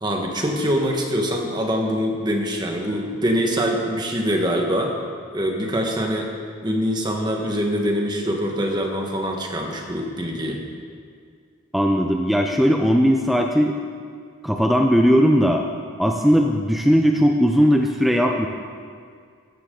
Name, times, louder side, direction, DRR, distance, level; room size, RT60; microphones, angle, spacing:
voice 1, 0.0-4.9 5.3-6.3 6.6-10.6, equal, 20° right, 1 dB, 1.4 m, -24 dB
voice 2, 11.7-13.7 14.4-15.6 16.0-18.5, equal, ahead, 2 dB, 0.5 m, -18 dB
14.0 x 13.5 x 3.9 m, 2.1 s
head